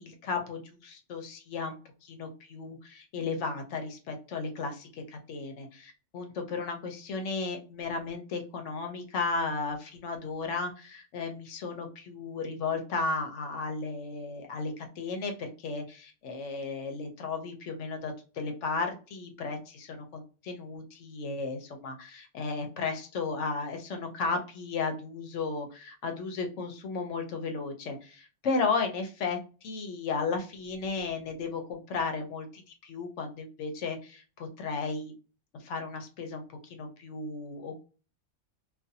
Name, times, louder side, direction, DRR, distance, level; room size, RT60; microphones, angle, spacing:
voice 1, 0.0-35.1 35.6-36.4 36.7-37.8, left 4 dB, 80° left, 5 dB, 1.0 m, -34 dB
2.5 x 2.2 x 2.6 m, 0.35 s
omnidirectional pair, 1.2 m